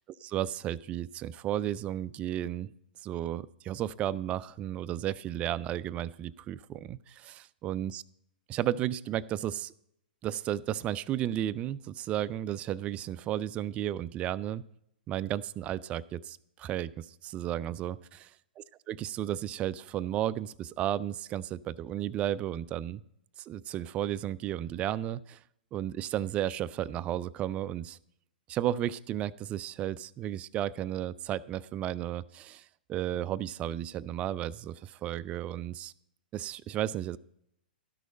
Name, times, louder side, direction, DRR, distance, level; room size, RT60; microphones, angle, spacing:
voice 1, 0.2-2.7 3.0-8.0 8.5-9.7 10.2-14.6 15.1-18.2 18.6-23.0 23.4-25.4 25.7-28.0 28.5-35.9 36.3-37.2, right 12 dB, 25° right, 16 dB, 0.3 m, -33 dB
12.5 x 6.3 x 5.0 m, 0.77 s
figure-of-eight pair, 115°, 5 cm